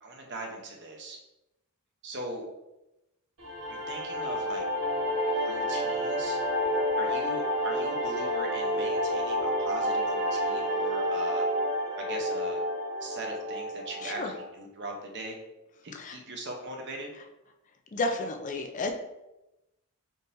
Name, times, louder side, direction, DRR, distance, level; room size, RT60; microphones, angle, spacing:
voice 1, 0.0-1.2 2.0-2.4 3.7-4.6 5.3-6.4 7.0-11.5 12.0-12.6 13.0-15.4 15.8-17.1, right 1 dB, 55° right, 2 dB, 0.7 m, -40 dB
sound 1, 3.4-14.5, equal, 75° right, 1.4 m, -29 dB
voice 2, 17.9-18.9, left 2 dB, 35° left, 4 dB, 0.4 m, -31 dB
4.0 x 3.7 x 2.6 m, 0.94 s
head